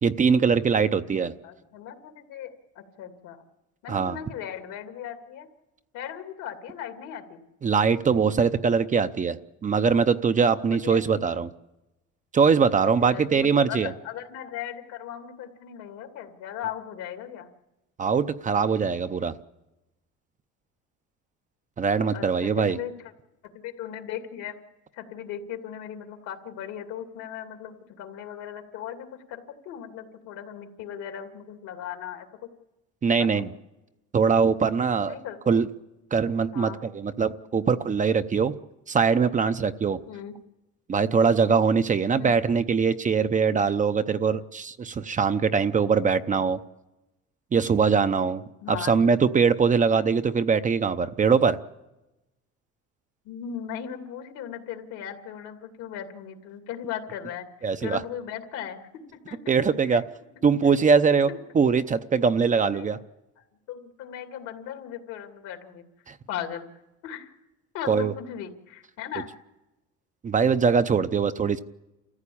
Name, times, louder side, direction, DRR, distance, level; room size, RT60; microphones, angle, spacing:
voice 1, 0.0-1.3 3.9-4.2 7.6-9.4 9.6-11.5 12.3-13.9 18.0-19.3 21.8-22.8 33.0-33.5 34.1-35.1 35.5-35.7 36.1-38.5 38.9-40.0 40.9-46.6 47.5-48.4 48.9-51.6 57.6-58.0 59.5-60.0 60.4-61.3 61.5-63.0 66.1-66.2 67.9-68.1 70.2-71.6, right 5 dB, 25° right, 11 dB, 0.7 m, -22 dB
voice 2, 1.4-3.4 3.8-5.5 5.9-7.4 10.7-11.3 12.8-17.5 22.1-22.9 23.6-24.6 24.9-32.3 33.2-33.5 35.1-35.6 36.5-36.8 40.1-40.3 42.2-42.3 48.6-49.0 53.2-57.5 57.8-59.6 59.9-60.0 60.4-60.5 61.3-61.4 62.6-63.0 63.4-65.8 66.3-66.7 67.0-67.3 67.7-69.3, left 9 dB, 80° left, 5 dB, 2.5 m, -38 dB
28.0 x 14.5 x 8.6 m, 1.0 s
cardioid pair, 120°, 30 cm